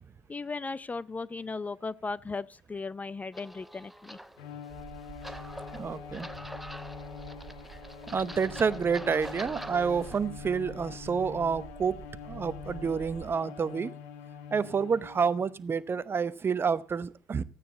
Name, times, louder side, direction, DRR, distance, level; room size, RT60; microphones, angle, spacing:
voice 1, 0.3-4.2, left 3 dB, 20° left, 0.5 m, -36 dB
sound 1, 3.3-10.2, right 1 dB, ahead, 1.0 m, -45 dB
Bowed string instrument, 4.4-15.6, left 8 dB, 85° left, 1.4 m, -45 dB
sound 2, 4.7-13.4, right 7 dB, 50° right, 2.1 m, -49 dB
voice 2, 5.8-6.3 8.1-13.9 14.5-17.4, right 6 dB, 35° right, 0.9 m, -29 dB
15.0 x 9.3 x 4.1 m
hypercardioid pair, 70°, 7 cm